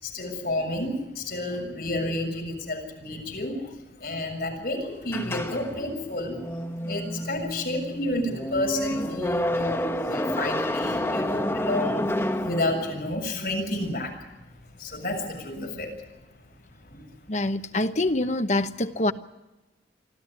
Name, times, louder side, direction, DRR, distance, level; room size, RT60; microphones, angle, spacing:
voice 1, 0.0-6.4 6.8-14.3 14.8-16.1 16.9-17.0, left 1 dB, 55° left, 6.9 m, -30 dB
sound 1, 5.1-13.2, left 1 dB, 15° left, 1.6 m, -29 dB
voice 2, 17.3-19.1, left 2 dB, 40° left, 1.0 m, -25 dB
25.0 x 13.5 x 10.0 m
head